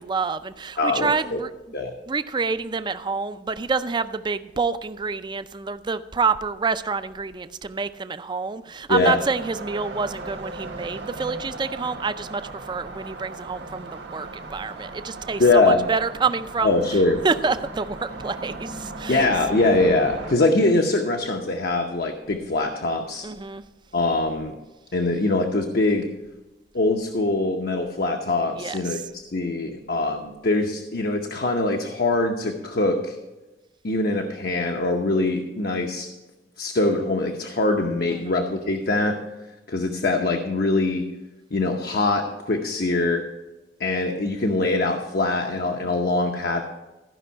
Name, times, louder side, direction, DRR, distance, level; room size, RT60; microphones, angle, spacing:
voice 1, 0.0-1.5 2.1-16.8 17.2-19.3 23.2-23.6 28.6-29.0 38.1-38.4, right 4 dB, 25° right, 13 dB, 0.4 m, -27 dB
voice 2, 0.8-1.4 1.7-1.9 8.9-9.2 15.4-15.8 16.6-17.2 19.1-23.3 23.9-24.5 24.9-26.1 26.7-33.2 33.8-36.1 36.6-39.2 39.7-41.1 41.5-43.2 43.8-46.6, left 2 dB, 60° left, 3 dB, 0.8 m, -23 dB
sound 1, 8.9-20.3, right 3 dB, 75° right, 1.4 m, -37 dB
14.0 x 5.5 x 5.5 m, 1.1 s
head